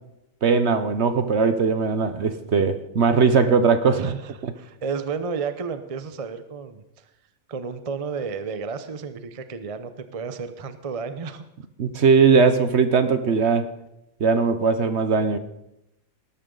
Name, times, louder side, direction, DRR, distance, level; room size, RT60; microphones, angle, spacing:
voice 1, 0.4-4.0 11.8-13.7 14.2-15.4, right 5 dB, 55° right, 10 dB, 1.0 m, -19 dB
voice 2, 4.0-7.1 7.5-11.4, right 5 dB, 30° right, 10 dB, 0.7 m, -32 dB
19.5 x 12.5 x 3.9 m, 0.87 s
omnidirectional pair, 1.6 m